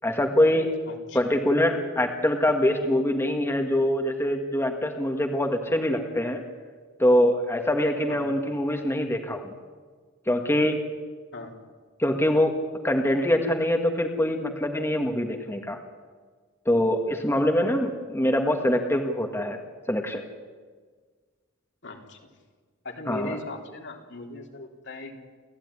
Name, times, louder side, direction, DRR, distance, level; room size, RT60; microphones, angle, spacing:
voice 1, 0.0-0.7 1.1-6.4 7.0-9.5 10.3-10.8 12.0-12.5 12.8-15.8 16.7-19.6 19.9-20.2 23.1-23.4, left 1 dB, 15° left, 3 dB, 1.8 m, -24 dB
voice 2, 0.9-1.4 8.1-8.5 11.3-11.6 17.4-17.7 21.8-22.2 22.8-25.1, left 2 dB, 60° left, 2 dB, 3.5 m, -39 dB
29.0 x 15.0 x 9.8 m, 1.5 s
head